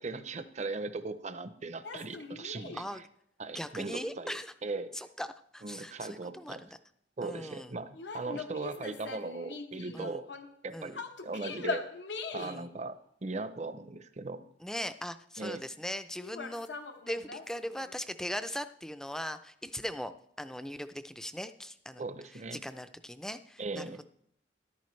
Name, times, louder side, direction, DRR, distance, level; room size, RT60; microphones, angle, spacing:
voice 1, 0.0-2.8 3.4-4.9 5.6-6.6 7.2-10.3 10.6-11.8 12.3-14.4 15.4-15.6 22.0-22.6 23.6-24.0, right 3 dB, 40° right, 12 dB, 0.6 m, -38 dB
sound 1, 1.8-2.9 7.9-10.6 10.9-12.7 16.2-17.9, left 4 dB, 80° left, 0.9 m, -41 dB
voice 2, 3.5-4.5 4.9-5.3 5.5-6.7 7.2-7.7 9.9-10.2 10.7-11.0 12.4-12.6 14.6-16.7 17.1-20.1 20.4-22.0 22.5-24.0, equal, 5° left, 10 dB, 0.4 m, -39 dB
13.5 x 11.5 x 3.2 m, 0.71 s
head